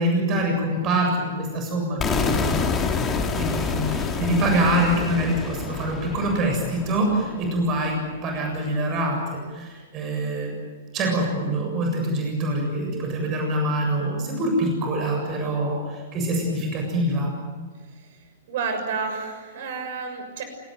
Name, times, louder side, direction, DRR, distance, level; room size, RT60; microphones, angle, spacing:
voice 1, 0.0-2.6 3.3-10.6 10.9-17.3, right 1 dB, 30° right, 2 dB, 7.5 m, -25 dB
sound 1, 2.0-7.9, left 4 dB, 20° left, 3.3 m, -27 dB
voice 2, 17.8-20.4, right 5 dB, 50° right, 7 dB, 6.5 m, -31 dB
29.0 x 19.0 x 9.4 m, 1.5 s
figure-of-eight pair, 105°, 0 cm